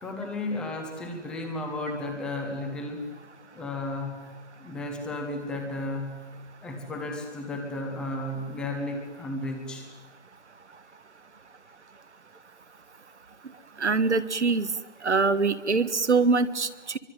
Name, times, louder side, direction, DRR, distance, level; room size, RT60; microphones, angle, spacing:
voice 1, 0.0-3.1 3.5-4.3 4.6-6.2 6.6-9.9, left 2 dB, ahead, 4 dB, 1.1 m, -33 dB
voice 2, 13.8-14.7 15.0-17.0, right 4 dB, 70° right, 13 dB, 1.8 m, -24 dB
25.0 x 24.0 x 9.4 m, 1.3 s
figure-of-eight pair, 165°, 36 cm